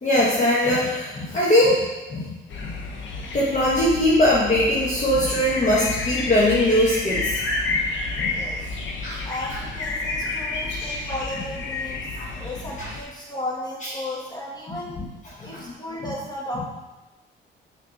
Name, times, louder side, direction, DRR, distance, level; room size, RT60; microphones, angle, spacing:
voice 1, 0.0-2.3 2.6-2.8 3.3-7.4 7.7-7.8 8.2-8.4 9.0-9.2 12.2-12.3 12.8-12.9 14.7-15.0 15.4-15.6, left 1 dB, 40° left, -5 dB, 1.3 m, -21 dB
sound 1, 2.5-13.0, left 3 dB, 70° left, 1.0 m, -30 dB
voice 2, 8.3-8.6 9.2-12.1 12.3-15.0 15.4-16.6, left 1 dB, 20° left, -4 dB, 1.7 m, -34 dB
6.0 x 4.3 x 4.0 m, 1.1 s
cardioid pair, 90°, 20 cm